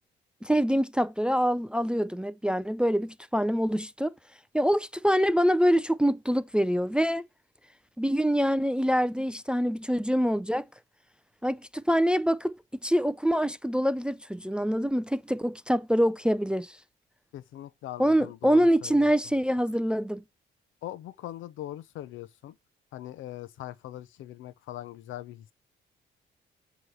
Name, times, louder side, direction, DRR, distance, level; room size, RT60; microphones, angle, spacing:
voice 1, 0.4-4.1 4.5-7.2 8.0-10.6 11.4-12.6 12.8-16.8 18.0-20.2, equal, 5° right, 0.3 m, -25 dB
voice 2, 17.3-19.1 20.8-22.5 22.9-25.5, left 13 dB, 80° left, 0.6 m, -41 dB
7.9 x 3.1 x 5.5 m
cardioid pair, 90°, 20 cm